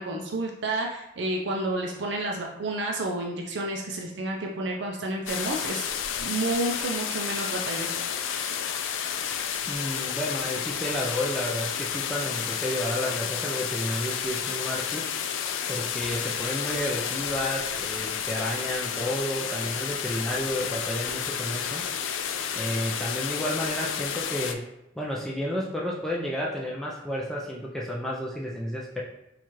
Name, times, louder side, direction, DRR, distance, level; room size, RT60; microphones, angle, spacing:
voice 1, 0.0-8.0, right 2 dB, 70° right, 0 dB, 0.4 m, -30 dB
sound 1, 5.3-24.5, left 8 dB, 90° left, 0.3 m, -31 dB
voice 2, 9.7-15.0 15.7-21.8 22.5-24.6 25.0-29.0, equal, ahead, -4 dB, 0.3 m, -31 dB
4.4 x 2.4 x 2.9 m, 0.90 s
head